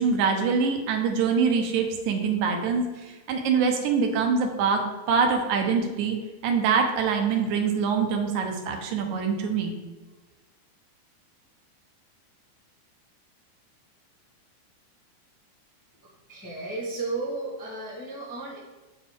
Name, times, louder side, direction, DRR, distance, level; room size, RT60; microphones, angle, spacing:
voice 1, 0.0-6.2 6.4-9.7, right 5 dB, 80° right, 3 dB, 2.2 m, -24 dB
voice 2, 16.3-18.6, right 3 dB, 5° right, -5 dB, 1.0 m, -33 dB
7.8 x 4.2 x 3.6 m, 1.2 s
omnidirectional pair, 3.5 m